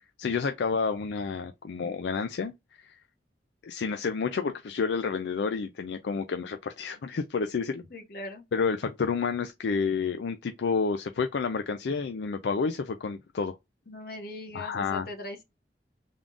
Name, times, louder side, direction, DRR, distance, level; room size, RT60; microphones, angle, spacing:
voice 1, 0.2-2.5 2.8-3.0 3.6-7.8 8.5-13.5 14.5-15.1, left 5 dB, 70° left, 0.4 m, -30 dB
voice 2, 7.7-8.4 13.9-15.4, left 1 dB, 55° left, 1.0 m, -40 dB
3.7 x 2.3 x 3.6 m
head